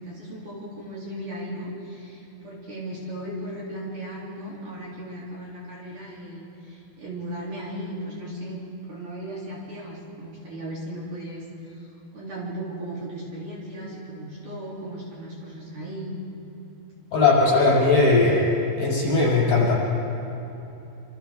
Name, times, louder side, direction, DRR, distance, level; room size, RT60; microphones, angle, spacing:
voice 1, 0.0-8.6 8.9-16.1, right 1 dB, 45° right, -5 dB, 4.2 m, -36 dB
voice 2, 17.1-18.4 18.8-19.7, left 3 dB, 60° left, -6 dB, 9.1 m, -19 dB
27.5 x 27.0 x 3.7 m, 2.9 s
omnidirectional pair, 5.4 m